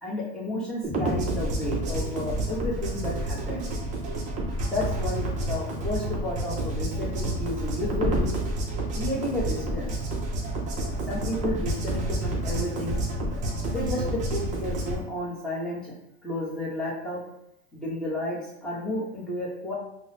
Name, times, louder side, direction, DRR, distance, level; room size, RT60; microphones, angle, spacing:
voice 1, 0.0-3.7 4.6-8.3 8.9-9.9 11.1-13.0 13.6-15.9 16.2-17.2 17.7-19.7, left 1 dB, ahead, -8 dB, 0.9 m, -32 dB
sound 1, 0.8-15.0, right 1 dB, 20° right, 0.5 m, -29 dB
3.6 x 2.1 x 2.7 m, 0.80 s
supercardioid pair, 135°, 34 cm